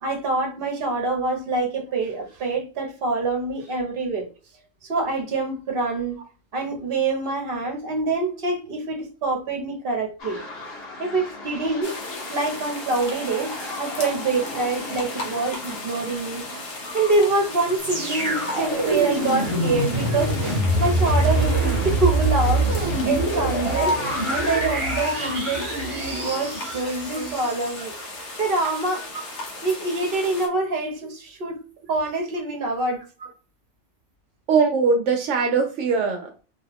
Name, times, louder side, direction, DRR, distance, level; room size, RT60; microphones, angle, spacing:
voice 1, 0.0-4.3 4.8-6.2 6.5-10.4 11.0-11.9 12.3-13.5 13.8-16.5 16.8-20.5 20.8-22.7 23.0-23.9 24.3-27.9 28.4-29.1 29.6-31.6 31.9-33.0, right 3 dB, 50° right, 1.0 m, -25 dB
sound 1, 10.2-24.7, left 1 dB, 55° left, 1.2 m, -37 dB
sound 2, 11.8-30.5, left 2 dB, 70° left, 1.0 m, -37 dB
sound 3, 17.8-27.9 28.5-28.6, right 1 dB, 25° right, 1.0 m, -24 dB
voice 2, 34.5-36.4, right 5 dB, 75° right, 0.9 m, -21 dB
2.9 x 2.3 x 3.3 m
omnidirectional pair, 1.3 m